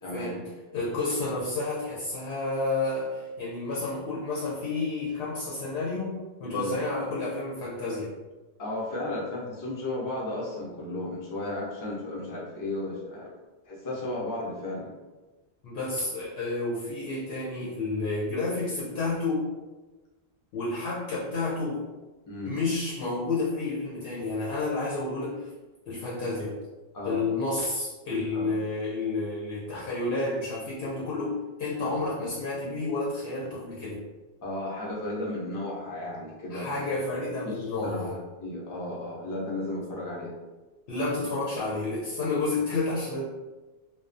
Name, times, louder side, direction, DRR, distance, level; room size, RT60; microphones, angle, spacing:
voice 1, 0.0-0.4 6.5-6.7 8.6-13.3 13.6-14.9 22.3-22.6 26.9-27.2 28.3-28.5 31.8-32.0 34.4-36.9 37.4-40.3, left 1 dB, 25° left, -5 dB, 0.5 m, -34 dB
voice 2, 0.7-8.1 15.6-19.5 20.5-21.9 22.4-25.5 25.9-26.6 27.0-34.0 36.5-38.2 40.9-43.2, left 3 dB, 80° left, -5 dB, 0.8 m, -30 dB
2.4 x 2.1 x 2.5 m, 1.2 s
omnidirectional pair, 1.1 m